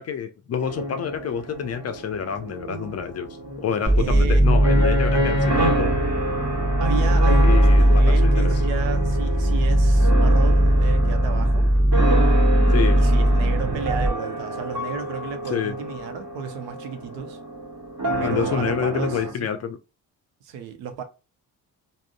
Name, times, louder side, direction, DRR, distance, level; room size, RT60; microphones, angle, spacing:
voice 1, 0.0-3.3 3.6-5.9 7.4-8.5 12.7-13.0 15.5-15.8 18.2-19.8, left 7 dB, 35° left, 0.5 m, -28 dB
sound 1, 0.6-19.3, right 1 dB, 45° right, 1.4 m, -28 dB
sound 2, 3.9-14.1, right 1 dB, 15° right, 0.6 m, -18 dB
voice 2, 4.0-4.5 6.8-11.7 13.0-17.4 18.2-19.5 20.4-21.0, right 7 dB, 65° right, 0.7 m, -33 dB
3.5 x 2.1 x 2.2 m
hypercardioid pair, 40°, 48 cm